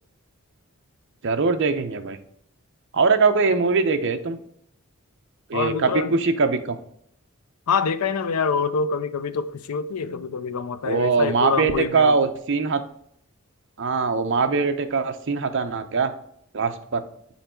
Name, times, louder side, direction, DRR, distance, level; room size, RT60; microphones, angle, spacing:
voice 1, 1.2-2.2 2.9-4.4 5.5-6.8 10.8-12.8 13.8-16.1 16.5-17.0, right 4 dB, 55° right, 0.6 m, -22 dB
voice 2, 5.5-6.1 7.7-12.2, left 5 dB, 85° left, 0.5 m, -26 dB
5.6 x 4.5 x 4.3 m
head